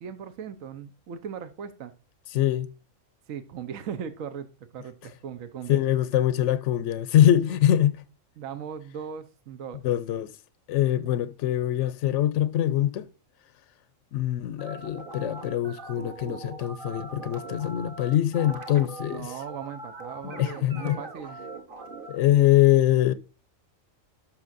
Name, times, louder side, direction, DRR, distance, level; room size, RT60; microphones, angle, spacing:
voice 1, 0.0-1.9 3.3-4.5 4.7-5.8 8.4-9.8 11.1-11.2 19.1-21.4, right 7 dB, 80° right, 1.2 m, -38 dB
voice 2, 2.3-2.7 5.7-8.0 9.8-10.3 10.7-13.1 14.1-19.3 20.2-21.0 22.1-23.1, left 12 dB, 70° left, 0.8 m, -23 dB
sound 1, 14.6-22.2, right 3 dB, 40° right, 1.3 m, -41 dB
12.0 x 5.8 x 2.5 m
omnidirectional pair, 1.4 m